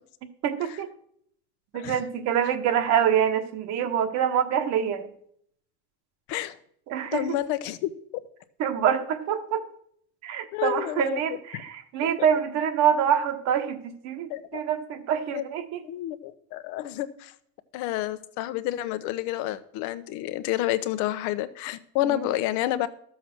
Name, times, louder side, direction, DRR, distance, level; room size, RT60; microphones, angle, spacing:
voice 1, 0.4-0.9 1.7-5.1 6.9-7.4 8.6-9.6 10.2-15.8 22.0-22.3, right 8 dB, 55° right, 8 dB, 1.4 m, -26 dB
voice 2, 7.1-7.9 10.5-11.2 11.5-11.6 12.2-12.3 14.3-14.6 15.3-15.4 15.8-17.3 17.7-22.9, left 14 dB, 65° left, 13 dB, 1.0 m, -29 dB
12.5 x 7.0 x 6.1 m, 0.67 s
supercardioid pair, 120°, 32 cm